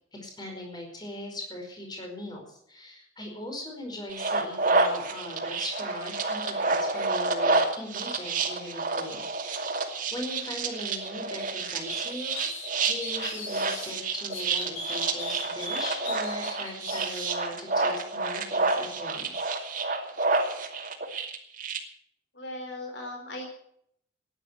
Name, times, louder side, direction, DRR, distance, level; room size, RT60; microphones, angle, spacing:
voice 1, 0.2-9.7 10.1-19.5, left 1 dB, 20° left, 1 dB, 4.9 m, -40 dB
sound 1, 4.1-21.8, right 3 dB, 40° right, 2.5 m, -29 dB
sound 2, 11.9-13.9 14.3-17.3, left 2 dB, 85° left, 6.6 m, -38 dB
voice 2, 22.3-23.5, left 1 dB, 55° left, 3 dB, 3.9 m, -38 dB
15.0 x 10.5 x 8.2 m, 0.69 s
head